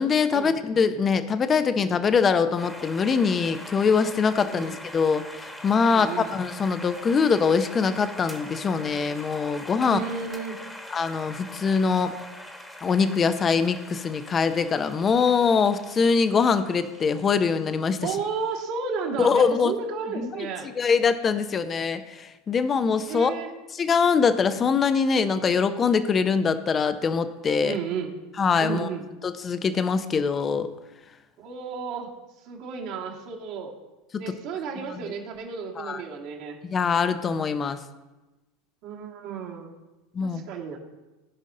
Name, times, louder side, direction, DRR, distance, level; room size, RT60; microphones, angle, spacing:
voice 1, 0.0-10.0 10.9-12.1 12.8-18.1 19.2-19.7 20.2-20.5 20.8-23.3 23.7-27.8 28.4-28.9 29.2-30.7 34.1-34.2 35.8-36.0 36.6-37.8 40.1-40.4, left 5 dB, 30° left, 10 dB, 0.7 m, -23 dB
sound 1, 2.6-18.6, left 1 dB, 5° left, 1.4 m, -43 dB
voice 2, 5.8-6.4 9.8-10.6 18.0-20.7 23.1-23.5 27.6-28.1 28.6-29.0 31.4-32.1 32.4-33.7 34.2-36.6 38.8-39.7 40.2-40.8, right 6 dB, 60° right, -2 dB, 2.2 m, -33 dB
15.0 x 5.2 x 3.8 m, 1.1 s
hypercardioid pair, 95°, 0 cm